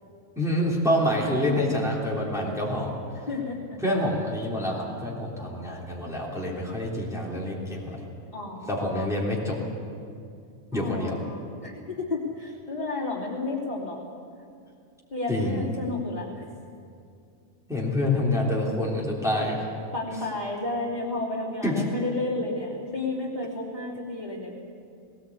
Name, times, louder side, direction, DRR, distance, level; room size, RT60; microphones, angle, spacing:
voice 1, 0.4-2.9 3.8-8.0 8.7-9.6 10.7-11.2 15.3-15.7 17.7-19.6 21.6-21.8, left 1 dB, ahead, -4 dB, 3.3 m, -27 dB
voice 2, 3.3-3.8 8.3-9.1 10.7-14.0 15.1-16.4 19.9-24.7, left 2 dB, 30° left, -5 dB, 3.3 m, -32 dB
19.5 x 19.0 x 8.5 m, 2.4 s
omnidirectional pair, 1.5 m